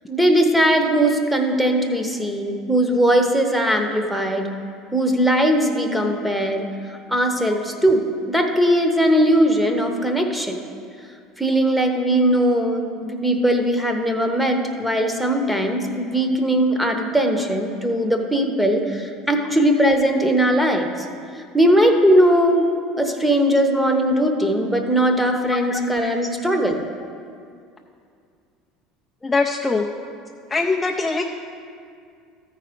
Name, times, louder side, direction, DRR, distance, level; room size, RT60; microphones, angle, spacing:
voice 1, 0.1-4.5 4.9-6.7 7.1-10.6 11.4-21.1 21.5-22.7 23.0-26.9, right 1 dB, 5° right, 4 dB, 0.9 m, -19 dB
voice 2, 25.5-25.8 29.2-29.8 30.5-31.2, left 3 dB, 15° left, 1 dB, 0.5 m, -22 dB
13.0 x 4.8 x 5.1 m, 2.3 s
supercardioid pair, 100°, 0 cm